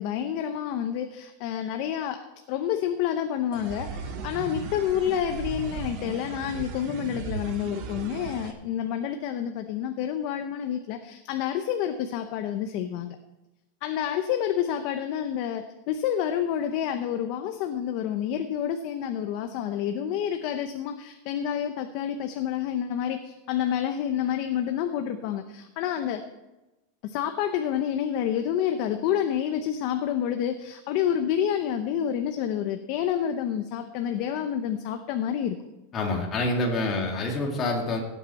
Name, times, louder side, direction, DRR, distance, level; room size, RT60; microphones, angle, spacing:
voice 1, 0.0-2.2 2.5-13.2 13.8-26.2 27.0-35.6, left 9 dB, 40° left, 7 dB, 0.7 m, -28 dB
sound 1, 3.5-8.5, right 5 dB, 40° right, 1.2 m, -36 dB
voice 2, 35.9-38.0, left 2 dB, 20° left, 0 dB, 2.0 m, -27 dB
17.5 x 8.4 x 4.1 m, 1.0 s
supercardioid pair, 170°, 0 cm